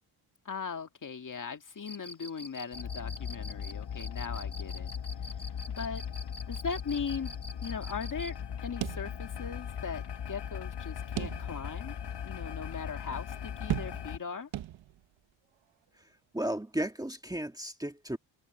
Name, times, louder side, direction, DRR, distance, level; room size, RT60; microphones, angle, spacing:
voice 1, 0.5-4.9 5.4-6.0 6.4-11.9 12.2-14.5, left 6 dB, 40° left, 2.1 m, -39 dB
Cricket, 1.8-8.4, equal, 10° left, 1.9 m, -46 dB
sound 1, 2.7-14.2, left 8 dB, 60° left, 1.7 m, -39 dB
sound 2, 8.8-9.7 10.0-10.1 11.2-11.8 12.3-12.4 13.7-14.3 14.5-15.2, right 13 dB, 80° right, 1.2 m, -36 dB
voice 2, 16.3-18.2, right 1 dB, 10° right, 1.9 m, -34 dB
cardioid pair, 90°, 46 cm